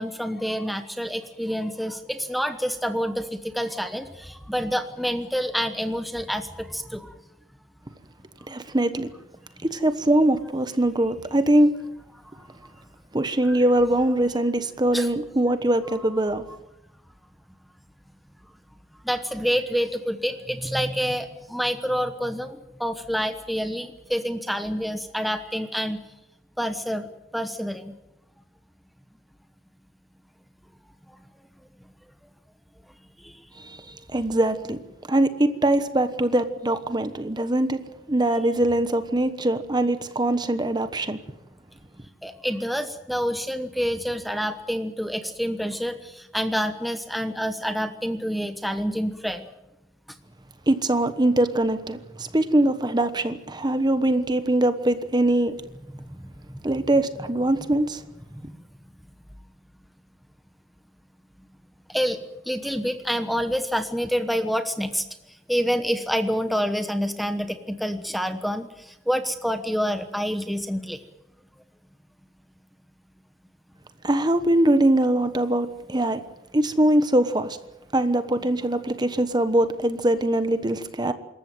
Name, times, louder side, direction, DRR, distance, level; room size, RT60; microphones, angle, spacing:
voice 1, 0.0-7.1 13.5-13.6 14.9-15.1 19.1-26.0 26.6-27.1 27.3-27.9 42.2-46.0 46.3-49.4 61.9-62.2 62.5-65.0 65.5-68.7 69.1-71.0, equal, ahead, 8 dB, 1.1 m, -27 dB
voice 2, 8.5-9.1 9.6-11.7 13.1-16.5 33.6-33.8 34.1-34.8 35.1-37.8 38.1-41.2 50.7-55.5 56.6-58.0 74.0-76.2 76.5-77.6 77.9-81.1, right 1 dB, 20° right, 11 dB, 1.2 m, -22 dB
26.5 x 14.0 x 9.2 m, 0.92 s
head